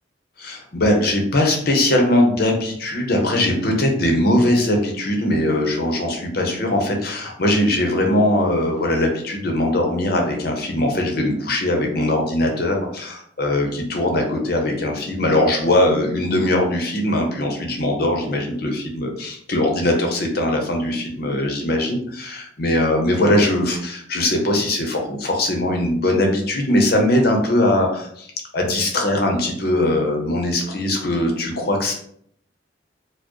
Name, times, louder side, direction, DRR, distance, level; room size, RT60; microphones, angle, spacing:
voice 1, 0.4-31.9, left 1 dB, 55° left, 2 dB, 0.8 m, -20 dB
4.3 x 2.1 x 3.0 m, 0.65 s
head